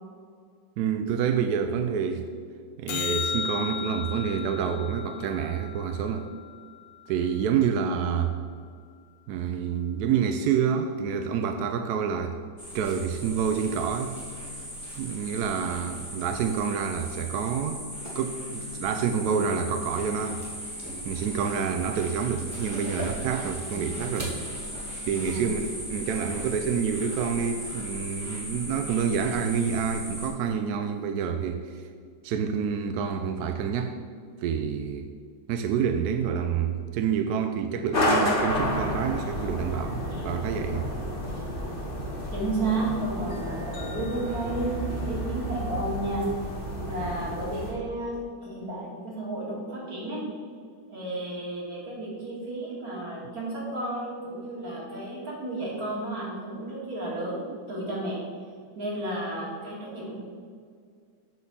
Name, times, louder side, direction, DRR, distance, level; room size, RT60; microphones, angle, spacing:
voice 1, 0.8-2.3 2.8-6.3 7.1-8.4 9.3-12.4 12.7-14.2 15.0-17.8 18.1-20.4 21.0-24.4 25.1-31.9 32.2-34.0 34.4-35.1 35.5-40.9, right 7 dB, 75° right, 6 dB, 0.9 m, -28 dB
sound 1, 2.9-7.4 13.9-14.0, left 7 dB, 75° left, 1.1 m, -35 dB
sound 2, 12.6-30.3, equal, 10° right, 1.7 m, -37 dB
sound 3, 37.9-47.7, equal, 30° left, 1.5 m, -30 dB
voice 2, 42.3-44.8 45.0-46.3 46.9-50.2 50.9-58.2 58.8-60.2, right 2 dB, 50° right, -5 dB, 2.7 m, -32 dB
8.6 x 4.2 x 6.8 m, 2.1 s
omnidirectional pair, 2.0 m